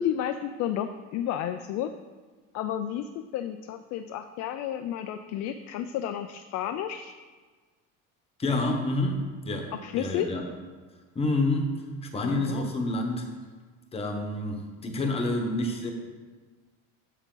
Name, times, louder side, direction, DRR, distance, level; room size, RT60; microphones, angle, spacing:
voice 1, 0.0-1.9 2.5-7.1 9.7-10.3 12.2-12.7, left 10 dB, 55° left, 8 dB, 0.4 m, -32 dB
voice 2, 8.4-10.4 11.1-13.3 13.9-15.9, left 2 dB, 20° left, 3 dB, 1.1 m, -28 dB
7.9 x 7.3 x 3.9 m, 1.4 s
cardioid pair, 145°, 33 cm